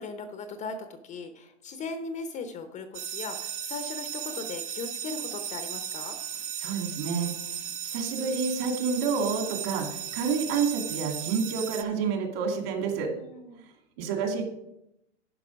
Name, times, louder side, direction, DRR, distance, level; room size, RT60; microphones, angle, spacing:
voice 1, 0.0-6.2 13.1-13.6, left 4 dB, 20° left, 8 dB, 0.6 m, -38 dB
sound 1, 2.9-11.8, right 9 dB, 20° right, 0.7 m, -36 dB
voice 2, 6.6-7.3 7.8-13.1 14.0-14.5, right 5 dB, 55° right, 4 dB, 2.4 m, -29 dB
10.5 x 5.5 x 5.1 m, 0.83 s
hypercardioid pair, 125°, 36 cm